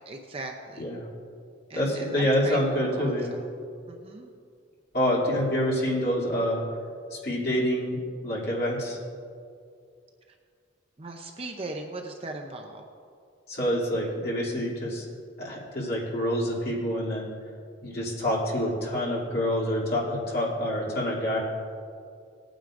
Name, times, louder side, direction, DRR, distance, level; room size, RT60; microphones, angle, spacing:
voice 1, 0.1-0.8 1.7-3.5 3.9-4.3 11.0-12.8, right 2 dB, 30° right, 3 dB, 0.6 m, -38 dB
voice 2, 1.7-3.3 4.9-6.6 7.1-9.0 13.5-15.0 15.4-17.3 17.8-21.4, equal, 50° left, -6 dB, 2.7 m, -27 dB
18.5 x 9.2 x 2.5 m, 2.3 s
head